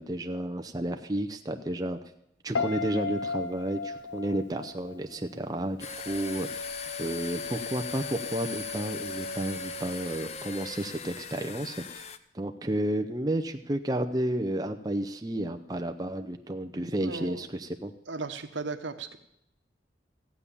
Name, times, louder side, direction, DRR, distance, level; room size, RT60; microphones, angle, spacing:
voice 1, 0.0-2.0 2.4-6.7 7.0-12.0 12.3-17.9, right 1 dB, 20° right, 6 dB, 0.6 m, -32 dB
Piano, 2.5-5.6 5.9-6.4, left 5 dB, 75° left, 0.8 m, -34 dB
sound 1, 5.8-12.2, left 4 dB, 35° left, 0.5 m, -38 dB
voice 2, 16.7-17.4 18.1-19.2, right 3 dB, 75° right, 8 dB, 1.1 m, -37 dB
15.0 x 8.4 x 7.1 m, 0.80 s
head